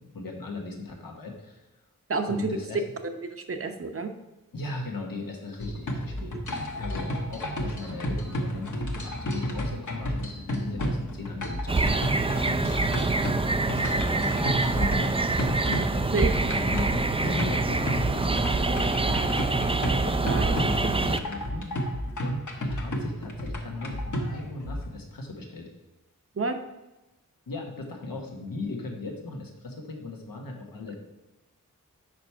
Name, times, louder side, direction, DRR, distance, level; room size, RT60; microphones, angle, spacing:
voice 1, 0.1-1.7 2.3-2.8 4.5-8.7 9.0-12.2 12.5-12.9 13.6-19.3 20.3-21.9 22.2-25.7 27.5-30.9, left 3 dB, 75° left, 1 dB, 1.3 m, -38 dB
voice 2, 2.1-2.6 3.0-4.1 6.2-6.4 16.1-16.3 20.2-20.6 26.4-26.6, right 3 dB, 40° right, 7 dB, 0.8 m, -30 dB
sound 1, 5.6-25.0, equal, 60° left, 1.2 m, -32 dB
sound 2, 11.7-21.2, right 3 dB, 15° right, 0.4 m, -25 dB
5.1 x 4.7 x 5.5 m, 1.0 s
cardioid pair, 45°, 34 cm